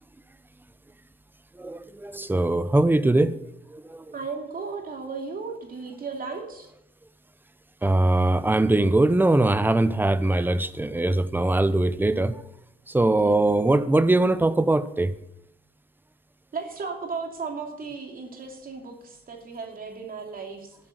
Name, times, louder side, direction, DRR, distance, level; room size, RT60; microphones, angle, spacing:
voice 1, 1.6-3.4 3.7-4.0 7.8-12.4 12.9-15.1, right 2 dB, 10° right, 0.8 m, -21 dB
voice 2, 4.1-6.7 13.0-13.4 16.5-20.8, right 4 dB, 45° right, 2.7 m, -35 dB
13.0 x 7.6 x 7.8 m
cardioid pair, 90°, 20 cm